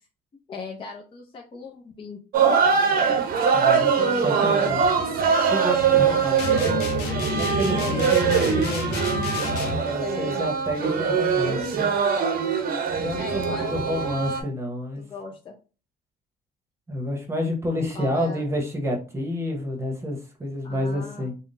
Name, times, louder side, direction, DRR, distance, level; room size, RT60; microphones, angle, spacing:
voice 1, 0.5-2.5 4.0-4.8 5.9-6.3 7.8-9.1 10.0-10.4 10.7-11.2 13.1-14.0 15.0-15.6 17.9-18.5 20.6-21.3, left 5 dB, 30° left, 0 dB, 0.5 m, -37 dB
sound 1, 2.3-14.4, right 6 dB, 60° right, 0.7 m, -22 dB
voice 2, 3.5-4.8 5.5-8.9 9.9-11.9 13.0-15.0 16.9-21.3, equal, 15° right, 2 dB, 1.0 m, -29 dB
sound 2, 6.4-9.9, left 3 dB, 75° left, 0.7 m, -29 dB
3.6 x 2.2 x 2.6 m, 0.33 s
cardioid pair, 110°, 17 cm